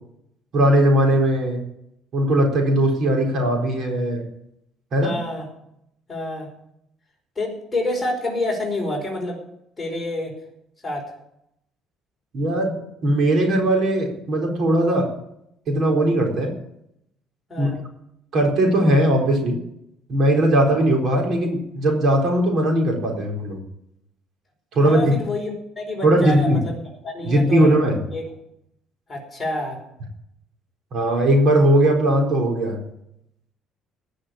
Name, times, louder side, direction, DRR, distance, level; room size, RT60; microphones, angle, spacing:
voice 1, 0.5-1.6 2.1-4.3 4.9-5.2 12.3-12.8 13.0-15.1 15.7-16.5 17.6-17.7 18.3-19.6 20.1-23.6 24.7-25.2 26.0-26.6 27.2-28.0 30.9-32.8, right 1 dB, 50° right, 1 dB, 4.1 m, -19 dB
voice 2, 5.0-5.5 6.1-6.5 7.3-9.4 9.8-10.3 10.8-11.1 17.5-17.8 24.8-26.8 27.0-27.7 28.1-28.2 29.1-29.8, left 1 dB, 15° left, -2 dB, 4.9 m, -28 dB
19.0 x 6.4 x 8.7 m, 0.78 s
cardioid pair, 140°, 0 cm